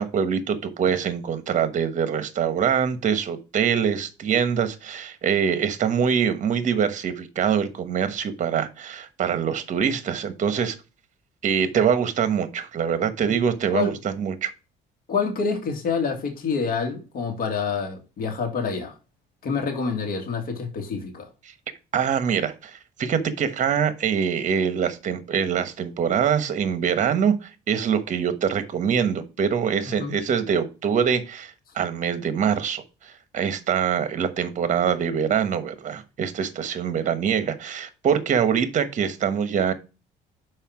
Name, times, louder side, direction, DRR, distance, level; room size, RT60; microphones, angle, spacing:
voice 1, 0.0-10.8 11.4-14.5 21.9-39.7, right 7 dB, 45° right, 1.2 m, -24 dB
voice 2, 15.1-19.0 19.4-21.3 30.0-30.2, left 5 dB, 60° left, 2.3 m, -27 dB
5.6 x 4.7 x 5.9 m
cardioid pair, 110°, 17 cm